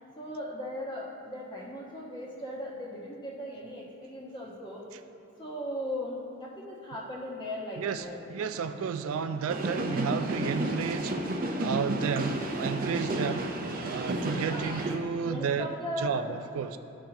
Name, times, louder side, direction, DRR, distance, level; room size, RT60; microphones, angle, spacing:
voice 1, 0.2-4.8 5.4-8.3 14.5-14.8 15.2-16.3, left 1 dB, 20° left, -4 dB, 1.3 m, -38 dB
voice 2, 7.8-11.2 11.6-13.5 13.8-16.8, right 6 dB, 70° right, 10 dB, 0.3 m, -32 dB
sound 1, 9.5-14.9, right 1 dB, 40° right, 0.7 m, -32 dB
13.5 x 5.4 x 2.9 m, 2.7 s
head